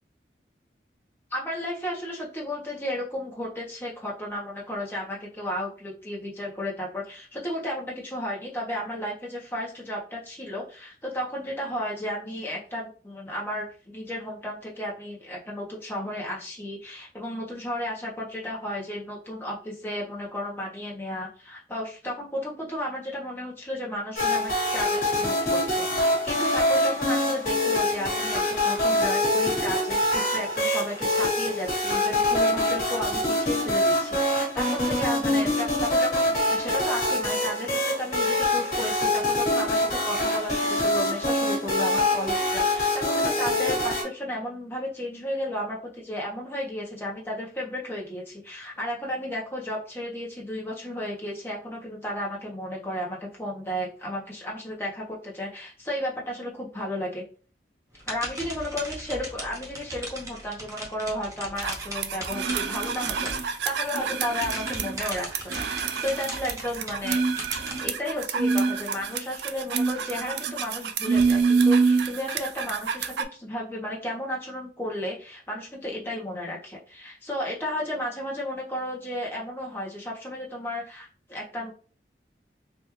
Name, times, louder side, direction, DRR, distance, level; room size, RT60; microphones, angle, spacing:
voice 1, 1.3-57.2 58.1-67.2 67.8-81.7, left 1 dB, 15° left, -4 dB, 0.9 m, -33 dB
sound 1, 24.2-44.0, left 1 dB, 45° left, 1.5 m, -25 dB
sound 2, 57.9-63.9 64.2-67.9, right 1 dB, 20° right, 0.6 m, -38 dB
sound 3, 61.6-73.2, right 5 dB, 70° right, 0.4 m, -26 dB
3.4 x 2.6 x 3.1 m, 0.39 s
head